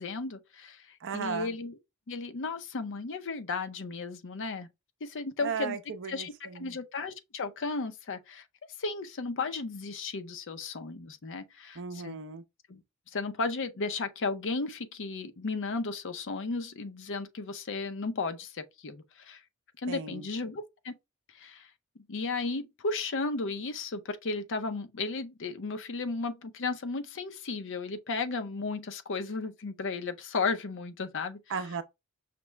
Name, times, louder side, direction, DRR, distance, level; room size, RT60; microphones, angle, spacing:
voice 1, 0.0-1.8 2.1-4.7 5.0-5.8 6.1-8.4 8.8-12.2 12.7-12.8 13.1-19.4 19.8-21.0 21.3-21.7 22.0-31.4, left 3 dB, 60° left, 0.6 m, -34 dB
voice 2, 1.0-1.5 5.4-6.8 11.8-12.4 19.9-20.3 31.5-31.8, right 6 dB, 60° right, 0.6 m, -36 dB
5.9 x 2.0 x 3.2 m
head